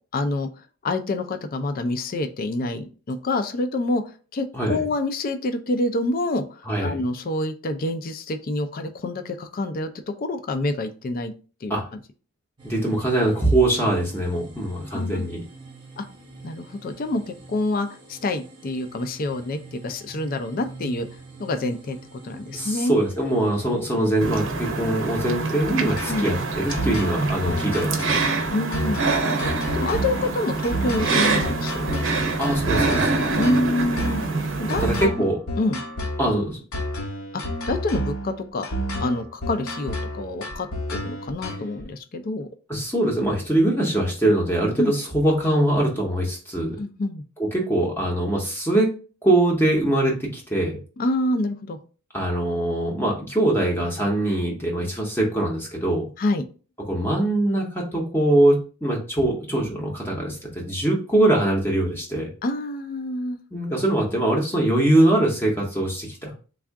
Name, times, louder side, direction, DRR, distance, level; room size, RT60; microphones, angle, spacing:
voice 1, 0.1-0.5 0.8-9.9 10.2-11.3 11.6-12.0 14.9-15.2 16.0-16.1 16.4-21.1 21.4-22.9 26.1-26.4 28.5-32.0 33.4-34.2 34.6-35.1 35.6-35.8 37.3-38.7 39.0-42.5 44.8-44.9 46.8-47.2 51.0-51.8 56.2-56.5 62.4-63.4, left 2 dB, 40° left, 8 dB, 0.4 m, -27 dB
voice 2, 6.7-7.0 11.7-11.8 12.6-15.4 22.5-28.2 32.4-33.2 34.8-35.4 36.2-36.6 42.7-46.8 47.4-48.9 49.2-50.8 52.1-56.1 56.9-62.3 63.5-66.3, right 1 dB, 10° left, -2 dB, 0.7 m, -22 dB
sound 1, 12.6-24.3, right 4 dB, 20° right, 0.8 m, -45 dB
sound 2, 24.2-35.1, right 3 dB, 60° right, 0.7 m, -25 dB
sound 3, 26.0-41.8, equal, 70° left, 0.7 m, -31 dB
3.5 x 2.4 x 3.4 m, 0.36 s
head